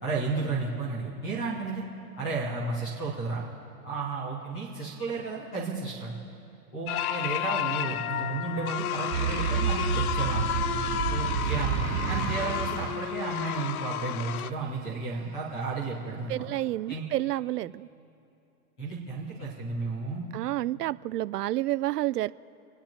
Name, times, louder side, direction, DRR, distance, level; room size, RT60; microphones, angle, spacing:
voice 1, 0.0-1.8 2.2-3.5 3.8-6.1 6.7-10.4 11.1-16.5 16.9-17.0 18.8-20.3, right 4 dB, 5° left, -5 dB, 0.3 m, -33 dB
sound 1, 6.9-14.5, left 11 dB, 70° left, 0.6 m, -32 dB
sound 2, 9.1-14.1, right 8 dB, 30° right, 1.0 m, -30 dB
voice 2, 16.3-17.9 20.3-22.3, right 15 dB, 85° right, 16 dB, 0.5 m, -29 dB
28.0 x 9.4 x 4.4 m, 2.8 s
hypercardioid pair, 150°, 46 cm